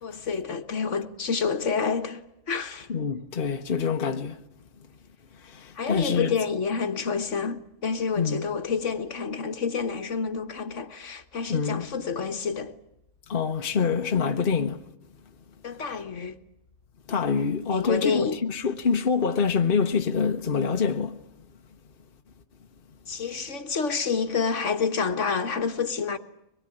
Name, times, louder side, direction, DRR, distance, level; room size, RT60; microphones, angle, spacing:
voice 1, 0.0-2.9 5.7-12.7 15.6-16.4 17.7-18.4 23.1-26.2, left 5 dB, 60° left, 1.6 m, -28 dB
voice 2, 2.9-4.4 5.4-6.3 8.2-8.4 11.5-11.9 13.3-14.8 17.1-21.2, left 6 dB, 45° left, 1.3 m, -26 dB
24.0 x 21.5 x 10.0 m
omnidirectional pair, 1.4 m